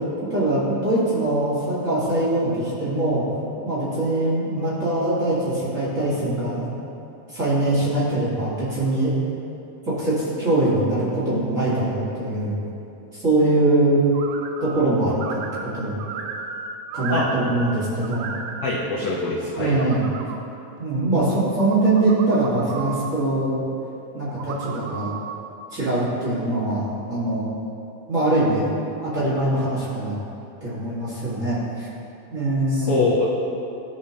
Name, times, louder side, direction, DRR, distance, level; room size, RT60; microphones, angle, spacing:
voice 1, 0.3-3.3 3.6-6.8 7.3-9.1 9.8-12.5 13.1-14.0 14.6-16.0 16.9-18.4 19.6-20.1 20.8-23.6 24.1-25.1 25.7-27.6 28.1-28.7 29.0-30.2 30.6-31.9 32.3-33.0, right 2 dB, 35° right, -10 dB, 1.5 m, -22 dB
sound 1, 14.1-14.8 15.1-17.7 18.0-18.9 19.4-20.4 21.3-23.2 24.3-25.4, right 5 dB, 90° right, 1.5 m, -34 dB
voice 2, 18.6-19.7 32.7-33.3, left 3 dB, 75° left, -5 dB, 1.3 m, -23 dB
14.5 x 5.0 x 2.8 m, 2.8 s
omnidirectional pair, 3.7 m